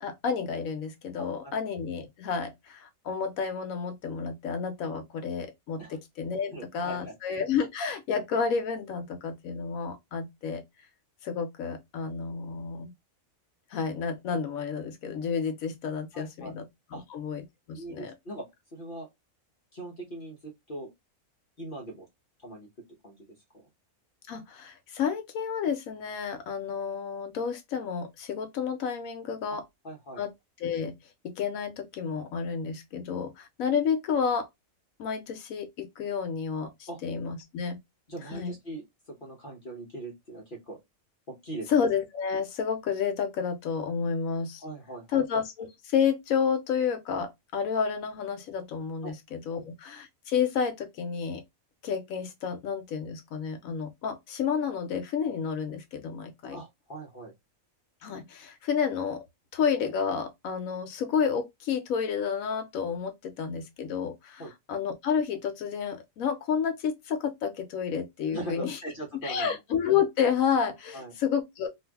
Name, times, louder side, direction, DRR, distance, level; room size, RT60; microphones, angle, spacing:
voice 1, 0.0-10.6 11.2-12.9 13.7-18.1 24.3-29.6 30.2-30.3 30.6-31.0 31.2-34.5 35.0-37.8 38.3-38.5 41.7-44.6 45.1-51.4 51.8-56.6 58.0-59.2 59.5-68.8 69.2-71.7, left 6 dB, 80° left, 1.0 m, -30 dB
voice 2, 1.2-1.5 5.8-6.0 6.5-7.1 16.1-16.5 16.9-17.0 17.7-18.5 18.7-19.1 19.7-20.9 21.6-22.1 22.4-22.7 23.0-23.2 29.8-30.2 36.9-37.0 38.1-40.8 41.3-41.7 44.6-45.2 49.0-49.1 49.5-49.6 56.5-57.3 64.4-64.5 68.3-69.6 70.9-71.1, right 2 dB, 45° left, 0.9 m, -40 dB
2.6 x 2.4 x 3.3 m
omnidirectional pair, 1.4 m